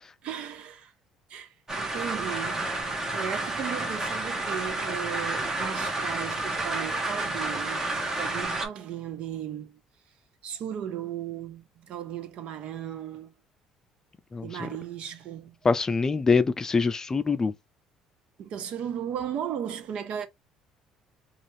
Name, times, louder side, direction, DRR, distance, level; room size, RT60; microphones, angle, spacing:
voice 1, 0.2-0.9 1.3-2.7 3.1-7.8 8.2-9.8 10.4-13.3 14.4-15.6 18.4-20.3, right 9 dB, 65° right, 0.6 m, -36 dB
sound 1, 1.7-8.7, right 2 dB, 25° right, 1.0 m, -30 dB
voice 2, 14.3-14.7 15.6-17.5, left 4 dB, 25° left, 0.4 m, -24 dB
2.7 x 2.4 x 3.1 m
supercardioid pair, 80°, 2 cm